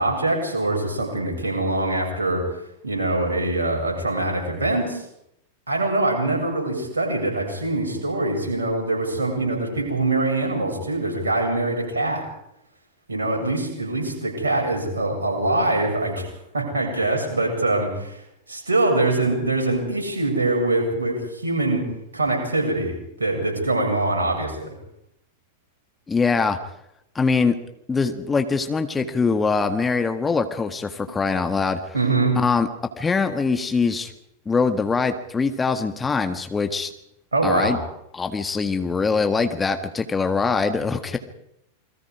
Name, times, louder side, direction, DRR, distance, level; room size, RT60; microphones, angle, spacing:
voice 1, 0.0-2.4 2.8-5.0 5.7-12.2 13.1-16.3 16.5-18.2 18.5-21.9 22.1-24.7 31.1-31.2 31.9-32.4 37.3-37.8, right 2 dB, 75° right, 1 dB, 7.6 m, -23 dB
voice 2, 26.1-26.6 27.1-27.5 27.9-31.8 32.3-32.7 33.0-34.1 34.4-36.9 37.4-37.8 38.1-41.2, left 4 dB, 15° left, 7 dB, 1.7 m, -23 dB
28.5 x 22.0 x 5.0 m, 0.79 s
figure-of-eight pair, 90°, 0 cm